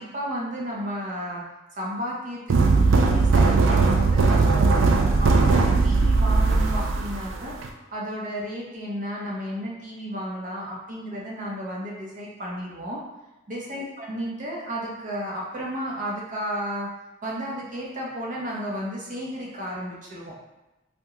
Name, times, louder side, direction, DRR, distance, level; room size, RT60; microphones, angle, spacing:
voice 1, 0.0-1.4 1.8-7.5 7.9-13.0 13.5-16.9 17.2-20.3, equal, 45° right, -3 dB, 0.6 m, -33 dB
sound 1, 2.5-7.7, right 3 dB, 85° right, 0.4 m, -19 dB
3.6 x 2.2 x 2.8 m, 1.0 s
head